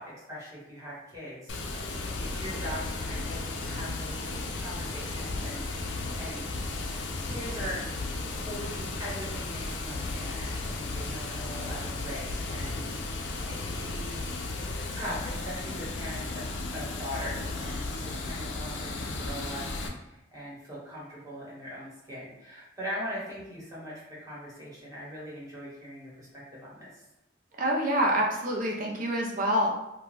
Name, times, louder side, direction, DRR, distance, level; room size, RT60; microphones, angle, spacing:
voice 1, 0.0-4.3 4.6-6.5 7.2-7.8 8.3-14.2 14.9-16.5 16.7-19.6 19.9-27.0, equal, 15° right, -7 dB, 1.1 m, -41 dB
Water, 1.5-19.9, left 3 dB, 65° left, 0.4 m, -34 dB
voice 2, 27.6-29.7, equal, 45° right, -1 dB, 0.6 m, -26 dB
2.6 x 2.3 x 3.2 m, 0.95 s
head